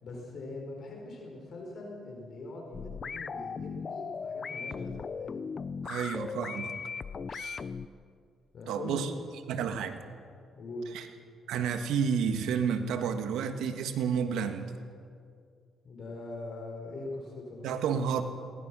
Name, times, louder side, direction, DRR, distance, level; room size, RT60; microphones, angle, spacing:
voice 1, 0.0-5.4 8.5-9.1 10.6-10.8 15.8-17.7 18.1-18.2, left 2 dB, 60° left, 0 dB, 4.8 m, -42 dB
sound 1, 2.7-7.9, left 5 dB, 40° left, 0.6 m, -38 dB
voice 2, 5.8-6.8 7.3-7.6 8.7-9.1 9.5-10.0 10.9-11.1 11.5-14.7 17.6-18.2, right 7 dB, 85° right, 8 dB, 1.6 m, -30 dB
21.5 x 19.0 x 6.3 m, 2.2 s
cardioid pair, 90°, 0 cm